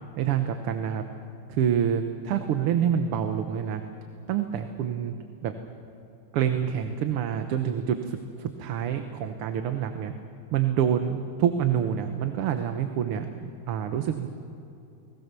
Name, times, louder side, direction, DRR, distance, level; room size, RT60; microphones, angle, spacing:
voice 1, 0.2-1.0 1.5-3.8 4.3-5.1 5.4-5.5 6.3-10.1 10.5-14.3, right 9 dB, 80° right, 8 dB, 1.9 m, -27 dB
29.5 x 20.5 x 6.8 m, 2.8 s
omnidirectional pair, 2.4 m